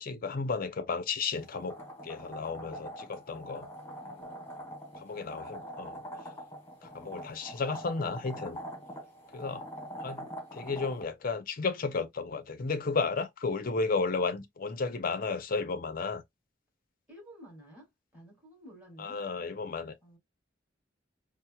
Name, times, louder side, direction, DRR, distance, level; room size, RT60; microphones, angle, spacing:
voice 1, 0.0-1.8 2.0-3.7 5.0-6.0 6.8-8.6 9.3-9.7 10.0-16.2 19.0-19.9, left 4 dB, 50° left, 0.5 m, -33 dB
sound 1, 1.4-11.0, equal, 15° left, 1.3 m, -44 dB
voice 2, 4.0-4.5 17.1-19.2 20.0-20.2, equal, 10° right, 2.2 m, -52 dB
4.2 x 2.0 x 2.3 m
head